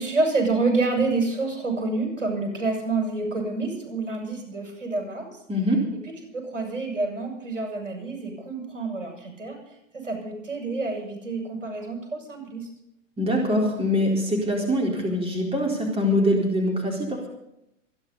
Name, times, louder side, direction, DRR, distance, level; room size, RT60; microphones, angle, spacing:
voice 1, 0.0-5.3 5.9-9.6 9.9-12.7, right 3 dB, 75° right, 2 dB, 7.0 m, -28 dB
voice 2, 5.5-5.8 13.2-17.3, equal, 15° right, 0 dB, 4.2 m, -23 dB
27.0 x 10.5 x 4.1 m, 0.81 s
figure-of-eight pair, 100°, 38 cm